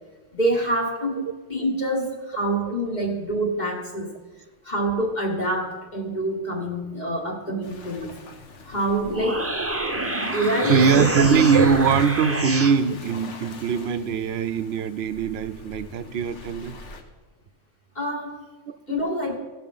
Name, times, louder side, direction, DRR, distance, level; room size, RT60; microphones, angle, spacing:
voice 1, 0.3-4.1 4.6-8.2 8.7-9.5 10.3-11.2 17.9-18.4 18.9-19.4, right 1 dB, 40° left, 1 dB, 1.4 m, -26 dB
Waves surf, 7.6-17.0, left 3 dB, 75° left, 1.4 m, -41 dB
sound 1, 8.9-12.8, right 2 dB, 15° right, 0.7 m, -27 dB
voice 2, 10.7-16.7 18.7-19.0, right 6 dB, 65° right, 13 dB, 0.8 m, -22 dB
17.0 x 5.8 x 5.3 m, 1.3 s
omnidirectional pair, 1.2 m